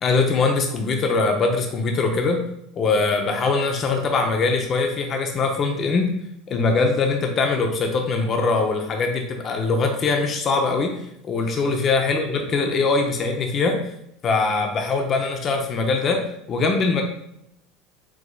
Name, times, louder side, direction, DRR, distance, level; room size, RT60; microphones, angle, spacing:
voice 1, 0.0-2.4 2.7-6.1 6.5-10.9 11.2-13.8 14.2-16.2 16.5-17.0, left 4 dB, 40° left, 3 dB, 0.7 m, -22 dB
4.8 x 3.7 x 2.3 m, 0.78 s
hypercardioid pair, 85°, 0 cm